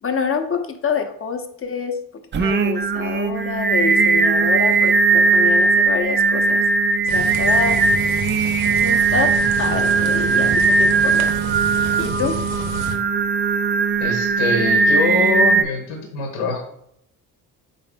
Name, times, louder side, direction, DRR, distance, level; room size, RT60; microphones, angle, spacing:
voice 1, 0.0-6.6 7.0-7.8 8.7-9.3 9.6-11.3 12.0-12.4, left 5 dB, 30° left, 7 dB, 0.6 m, -26 dB
Singing, 2.3-15.6, right 4 dB, 25° right, 0.3 m, -18 dB
sound 1, 7.1-13.0, right 3 dB, 65° right, 0.9 m, -30 dB
voice 2, 14.0-16.6, left 3 dB, 75° left, 2 dB, 0.9 m, -24 dB
3.9 x 3.7 x 3.6 m, 0.72 s
hypercardioid pair, 50°, 49 cm